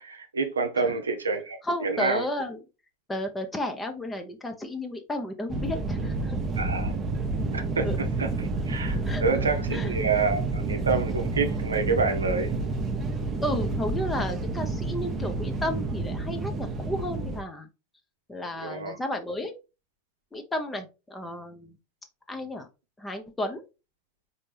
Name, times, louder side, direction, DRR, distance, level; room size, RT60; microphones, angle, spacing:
voice 1, 0.0-2.3 6.6-6.9 7.5-12.6 18.6-19.0, right 4 dB, 80° right, 0.6 m, -28 dB
voice 2, 1.6-2.6 3.1-6.4 7.8-8.0 8.4-8.5 9.1-9.2 9.7-9.9 13.4-17.7 18.3-19.5 20.3-21.8 22.3-22.7 23.0-23.6, left 1 dB, 15° left, 0.6 m, -33 dB
sound 1, 5.5-17.4, right 3 dB, 30° right, 0.7 m, -29 dB
4.3 x 2.6 x 3.2 m
figure-of-eight pair, 85°, 0 cm